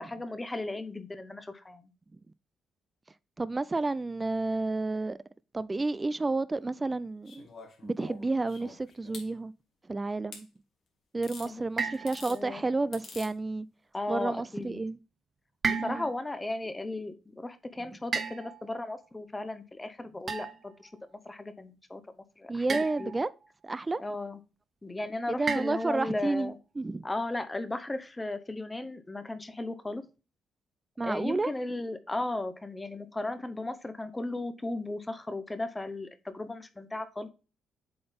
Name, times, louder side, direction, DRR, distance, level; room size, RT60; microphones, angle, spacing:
voice 1, 0.0-1.9 11.4-11.6 12.3-12.6 13.9-14.8 15.7-20.9 21.2-22.0 22.4-23.1 24.0-24.4 24.8-26.5 27.0-30.0 31.0-37.3, left 2 dB, 15° left, 0.8 m, -36 dB
voice 2, 3.4-5.2 5.5-7.5 7.8-9.5 9.9-10.5 11.1-13.7 14.1-15.0 15.8-16.1 22.5-23.3 23.6-24.0 25.3-27.1 31.0-31.5, right 3 dB, 20° right, 0.3 m, -31 dB
sound 1, 7.2-9.3 10.3-10.4 11.2-11.5 11.9-12.4 12.9-13.3 14.6-14.7, left 4 dB, 55° left, 2.1 m, -47 dB
sound 2, 11.8-12.7 15.6-16.3 18.1-18.9 20.3-20.8 22.7-23.3 25.5-26.2, right 5 dB, 45° right, 0.9 m, -34 dB
7.8 x 3.9 x 3.5 m
cardioid pair, 90°, 0 cm